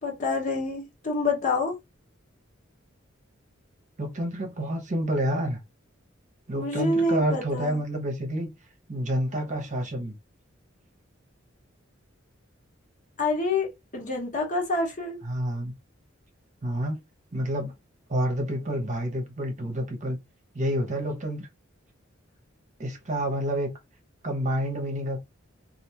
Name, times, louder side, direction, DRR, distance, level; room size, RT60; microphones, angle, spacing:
voice 1, 0.0-1.8 6.5-7.8 13.2-15.2, left 2 dB, 40° left, 1.1 m, -27 dB
voice 2, 4.0-5.6 6.5-8.5 8.9-10.2 15.2-15.7 16.6-17.0 17.3-17.7 18.1-20.2 20.5-21.5 22.8-23.7 24.2-25.2, equal, 40° right, 0.9 m, -28 dB
3.3 x 2.6 x 2.8 m
head